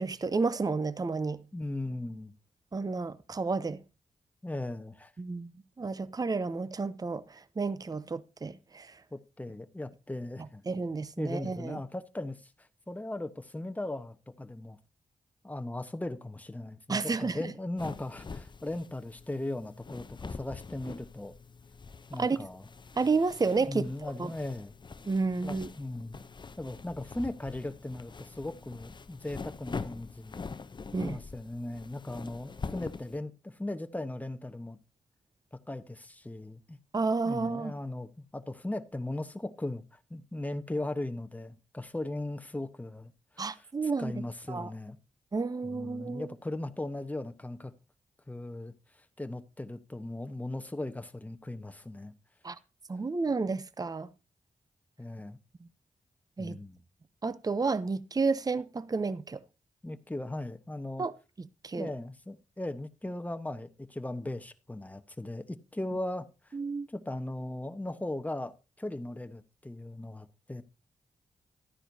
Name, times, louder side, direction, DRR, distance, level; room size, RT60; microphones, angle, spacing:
voice 1, 0.0-1.4 2.7-3.8 5.2-5.5 5.8-9.0 10.7-11.8 16.9-17.4 22.2-22.4 23.0-24.3 25.1-25.7 30.9-31.2 36.9-37.7 43.4-44.2 44.5-44.7 45.3-46.3 52.4-52.6 52.9-54.1 56.4-56.6 57.2-59.4 61.0-61.1 61.4-61.9 66.5-66.9, right 4 dB, 30° right, 0.6 m, -31 dB
voice 2, 1.5-2.3 4.4-5.1 9.1-10.6 11.2-14.8 15.4-21.3 22.1-22.7 23.7-24.8 25.4-26.2 26.6-30.5 31.0-34.8 35.5-36.8 37.2-43.6 44.0-45.0 45.6-47.7 48.3-48.7 49.2-52.1 55.0-55.4 56.4-56.8 59.8-61.0 61.8-66.3 66.9-70.6, left 1 dB, 10° left, 1.0 m, -38 dB
sound 1, 17.8-33.2, left 4 dB, 35° left, 0.6 m, -44 dB
13.0 x 9.8 x 2.7 m
cardioid pair, 55°, 13 cm